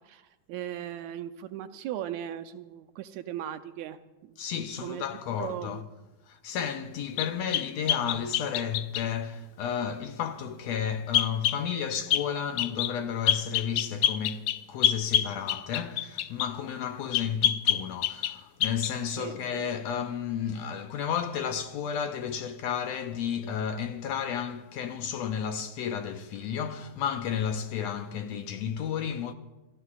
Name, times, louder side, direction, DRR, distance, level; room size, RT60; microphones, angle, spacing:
voice 1, 0.1-4.4 4.8-5.1 5.4-5.8 17.2-17.4 19.2-19.4, right 11 dB, 80° right, 1.9 m, -38 dB
voice 2, 4.4-5.8 6.3-29.3, left 8 dB, 75° left, 1.7 m, -32 dB
sound 1, 7.2-9.1 11.1-11.6 12.1-12.3 12.6-12.9 13.3-16.5 17.1-18.4 18.6-18.9, left 11 dB, 90° left, 1.4 m, -26 dB
29.0 x 14.0 x 2.4 m
omnidirectional pair, 3.5 m